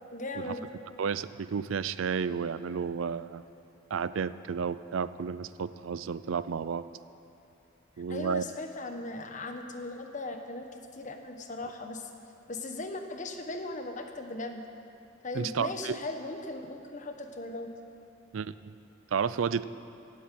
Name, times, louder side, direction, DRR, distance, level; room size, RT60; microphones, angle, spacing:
voice 1, 0.1-0.6 8.1-12.1 12.5-14.6 15.2-17.7, left 2 dB, 40° left, 5 dB, 1.2 m, -38 dB
voice 2, 1.0-3.4 3.9-6.9 8.0-8.4 15.3-16.0 18.3-18.7 19.1-19.6, right 6 dB, 85° right, 15 dB, 0.4 m, -32 dB
17.5 x 8.6 x 7.7 m, 2.7 s
head